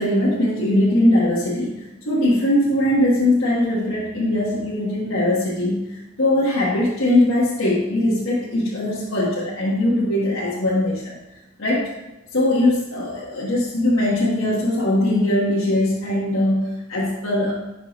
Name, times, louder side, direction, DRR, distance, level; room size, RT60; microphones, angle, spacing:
voice 1, 0.0-11.2 11.6-11.9 12.3-17.5, left 1 dB, 85° left, -6 dB, 1.3 m, -20 dB
10.0 x 5.7 x 3.0 m, 0.98 s
head